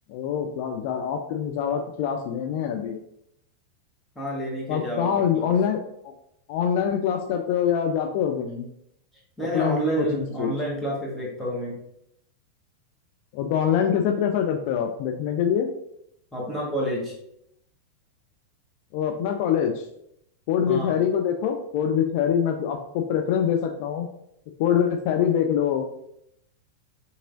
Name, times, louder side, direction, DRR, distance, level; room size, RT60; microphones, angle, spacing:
voice 1, 0.1-3.0 4.7-5.8 6.0-6.1 6.5-8.7 9.4-10.5 13.3-15.7 18.9-19.9 20.5-24.1 24.6-25.8, left 8 dB, 45° left, 4 dB, 0.4 m, -24 dB
voice 2, 4.1-5.5 9.4-11.8 16.3-17.1 20.7-20.9, right 1 dB, ahead, -5 dB, 1.5 m, -29 dB
5.2 x 2.9 x 2.5 m, 0.76 s
figure-of-eight pair, 90°, 0 cm